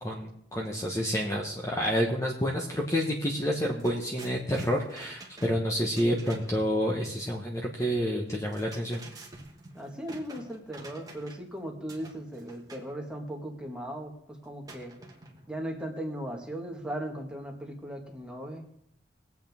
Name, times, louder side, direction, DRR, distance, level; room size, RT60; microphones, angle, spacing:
voice 1, 0.0-9.0, equal, 15° left, -1 dB, 1.2 m, -29 dB
sound 1, 3.1-3.3 3.5-6.7 8.3-11.5 11.9-12.9 14.7-15.6, right 2 dB, 20° right, 1.6 m, -48 dB
voice 2, 9.7-14.9 15.5-18.7, right 1 dB, 5° right, 0 dB, 1.8 m, -38 dB
21.0 x 8.1 x 3.6 m, 0.71 s
head